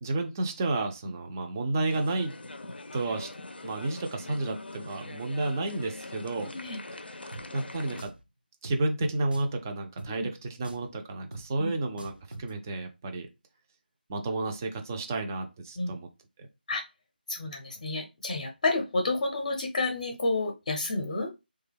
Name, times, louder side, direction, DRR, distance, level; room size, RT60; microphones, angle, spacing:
voice 1, 0.0-2.3 2.9-3.3 3.6-6.5 7.2-8.1 8.6-13.3 14.1-16.1, right 2 dB, 20° right, 4 dB, 0.4 m, -31 dB
sound 1, 1.9-8.0, left 2 dB, 75° left, 0.5 m, -43 dB
voice 2, 6.4-6.8 10.1-10.3 11.6-11.7 15.8-15.9 16.7-16.8 17.3-21.3, left 2 dB, 35° left, 2 dB, 0.6 m, -30 dB
Drum, 7.3-7.5 8.0-8.2 8.6-8.8 9.3-9.6 10.0-10.1 10.6-10.9 11.3-11.5 12.0-12.5, right 2 dB, 65° right, 0.5 m, -43 dB
3.3 x 2.2 x 3.4 m, 0.25 s
figure-of-eight pair, 160°, 5 cm